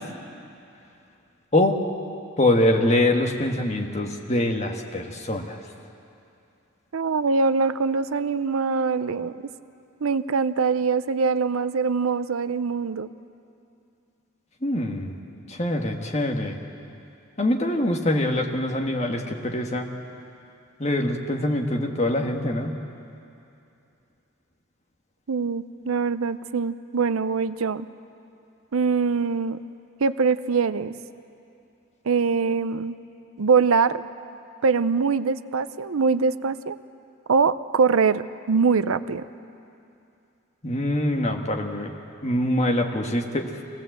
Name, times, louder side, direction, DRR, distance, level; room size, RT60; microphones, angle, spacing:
voice 1, 2.4-5.6 14.6-15.2 15.5-16.6 17.4-19.9 20.8-22.8 40.6-41.9 42.2-43.6, left 1 dB, 30° left, 2 dB, 1.5 m, -24 dB
voice 2, 6.9-9.3 10.0-13.1 25.3-27.9 28.7-29.6 30.0-30.9 32.1-33.0 33.4-34.0 34.6-36.8 37.3-39.2, right 5 dB, 80° right, 14 dB, 0.6 m, -23 dB
24.5 x 18.0 x 7.9 m, 2.6 s
head